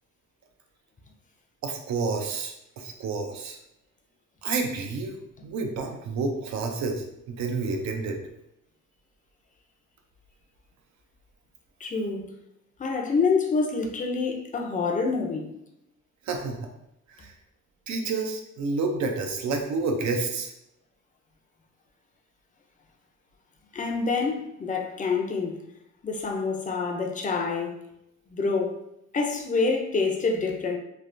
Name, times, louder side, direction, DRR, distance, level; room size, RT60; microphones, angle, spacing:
voice 1, 1.6-3.6 4.4-5.1 5.4-8.2 16.3-16.6 17.2-17.3 17.9-20.5, right 4 dB, 65° right, 0.6 m, -29 dB
voice 2, 11.8-12.3 12.8-15.5 23.7-25.6 26.0-27.8 28.3-28.8 29.1-30.8, left 4 dB, 25° left, 0.5 m, -27 dB
3.3 x 2.4 x 2.5 m
cardioid pair, 90°, 30 cm